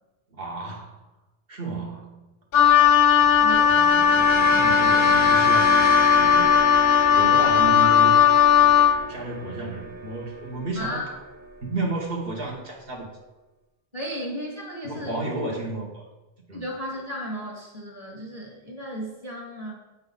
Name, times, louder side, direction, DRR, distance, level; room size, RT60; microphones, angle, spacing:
voice 1, 0.3-1.0 1.5-2.3 3.7-6.6 7.1-8.1 8.6-8.7 9.1-11.0 11.6-13.1 14.8-16.0 16.5-16.6, right 3 dB, 60° right, -1 dB, 1.6 m, -32 dB
Wind instrument woodwind instrument, 2.5-9.0, left 8 dB, 65° left, 0.7 m, -17 dB
sound 1, 3.2-11.7, right 2 dB, 10° right, 1.0 m, -32 dB
voice 2, 3.4-3.8 7.5-7.9 9.0-9.1 10.8-11.1 13.9-15.3 16.5-19.8, equal, 35° right, -2 dB, 2.0 m, -34 dB
8.1 x 5.5 x 4.0 m, 1.1 s
omnidirectional pair, 1.1 m